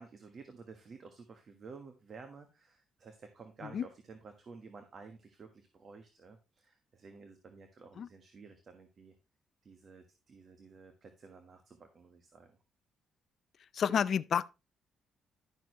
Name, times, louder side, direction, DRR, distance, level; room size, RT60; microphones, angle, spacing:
voice 1, 0.0-9.1 9.6-12.6, right 4 dB, 50° right, 1.4 m, -53 dB
voice 2, 13.7-14.5, left 8 dB, 55° left, 0.4 m, -29 dB
11.5 x 6.3 x 3.1 m
cardioid pair, 90°, 0 cm